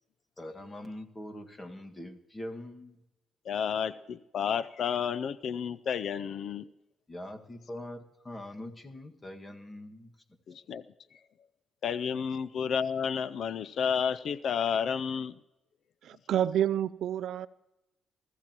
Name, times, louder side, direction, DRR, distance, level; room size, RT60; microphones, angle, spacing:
voice 1, 0.4-2.9 7.1-10.1, left 1 dB, 20° left, 1.7 m, -43 dB
voice 2, 3.5-6.7 10.5-10.8 11.8-15.4, left 7 dB, 65° left, 0.5 m, -31 dB
voice 3, 16.1-17.5, right 10 dB, 75° right, 0.4 m, -28 dB
24.0 x 14.5 x 3.0 m
cardioid pair, 90°, 0 cm